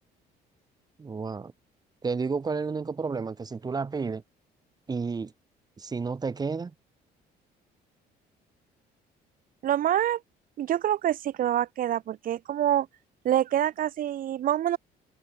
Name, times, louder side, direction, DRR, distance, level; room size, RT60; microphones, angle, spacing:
voice 1, 1.0-1.5 2.0-4.2 4.9-5.3 5.8-6.7, right 4 dB, 25° right, 1.1 m, -31 dB
voice 2, 9.6-10.2 10.6-12.9 13.2-14.8, right 11 dB, 55° right, 1.2 m, -26 dB
open air
cardioid pair, 110°, 17 cm